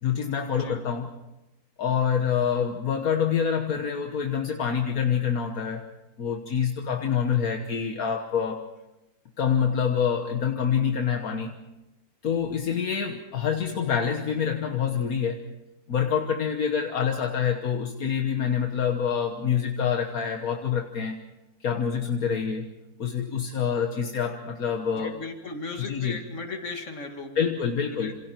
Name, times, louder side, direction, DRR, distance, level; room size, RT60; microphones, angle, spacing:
voice 1, 0.0-1.1 1.8-5.9 6.2-8.6 9.4-11.6 12.2-15.4 15.9-21.2 21.6-22.7 23.0-25.2 25.8-26.2 27.4-28.1, left 7 dB, 70° left, 4 dB, 1.7 m, -26 dB
voice 2, 24.9-27.5 27.9-28.1, left 3 dB, 50° left, 4 dB, 2.5 m, -36 dB
27.5 x 27.0 x 4.5 m, 0.97 s
omnidirectional pair, 1.6 m